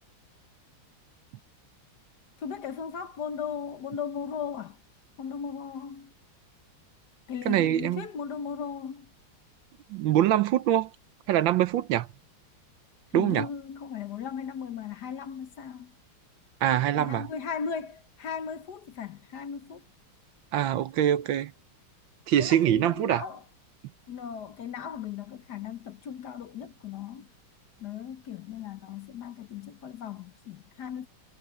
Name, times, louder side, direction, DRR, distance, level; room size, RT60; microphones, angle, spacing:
voice 1, 2.4-4.8 5.2-6.1 7.3-9.1 13.1-15.9 17.0-19.9 22.4-23.4 24.1-27.3 27.8-31.1, left 7 dB, 60° left, 1.4 m, -37 dB
voice 2, 7.5-8.0 9.9-10.9 11.3-12.1 13.1-13.5 16.6-17.3 20.5-21.5 22.3-23.2, right 11 dB, 70° right, 1.4 m, -24 dB
omnidirectional pair, 2.3 m